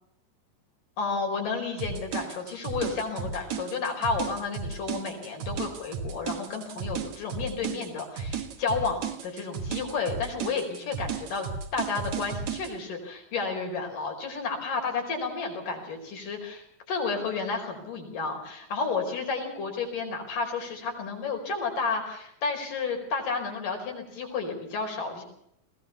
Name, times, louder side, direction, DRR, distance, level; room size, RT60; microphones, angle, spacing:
voice 1, 1.0-11.5 11.7-25.2, left 4 dB, 75° left, 2 dB, 6.3 m, -31 dB
sound 1, 1.8-12.7, right 6 dB, 60° right, 2.7 m, -34 dB
20.5 x 18.0 x 7.1 m, 0.74 s
omnidirectional pair, 3.8 m